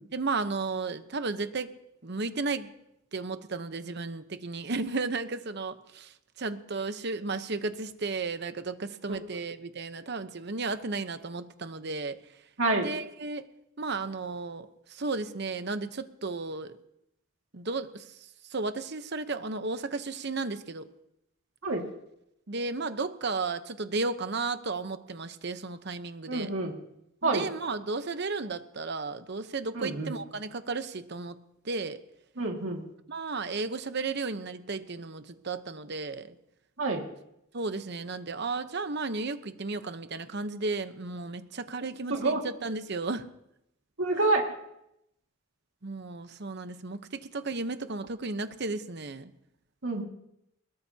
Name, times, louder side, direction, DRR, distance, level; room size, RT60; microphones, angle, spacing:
voice 1, 0.0-2.7 3.1-12.2 12.7-13.5 13.8-16.7 17.5-20.9 22.5-26.5 27.2-31.4 31.6-32.0 33.1-36.4 37.5-43.3 44.2-44.3 45.8-49.3, right 3 dB, 55° right, 10 dB, 1.0 m, -34 dB
voice 2, 26.3-26.7 27.2-27.4 29.7-30.1 32.4-32.8 36.8-37.0 42.1-42.4 44.0-44.5 49.8-50.0, right 2 dB, 70° right, 1 dB, 2.2 m, -27 dB
21.5 x 20.5 x 2.9 m, 0.81 s
head